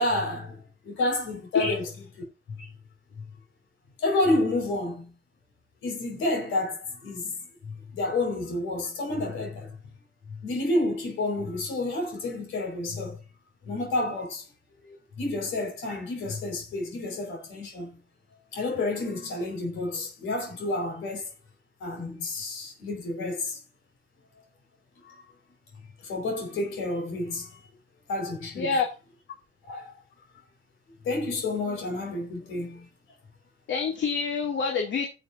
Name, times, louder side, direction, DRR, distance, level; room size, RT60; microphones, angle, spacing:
voice 1, 0.0-1.9 2.5-2.7 3.2-3.4 4.0-5.1 5.8-7.4 7.6-9.8 10.3-13.2 13.6-14.5 14.8-18.0 18.5-21.3 21.8-23.6 25.0-25.1 26.0-27.6 28.1-28.7 29.6-29.9 31.0-32.9, left 2 dB, 85° left, 4.9 m, -30 dB
voice 2, 33.7-35.1, left 5 dB, 65° left, 2.3 m, -26 dB
16.0 x 7.3 x 2.6 m
cardioid pair, 90°, 20 cm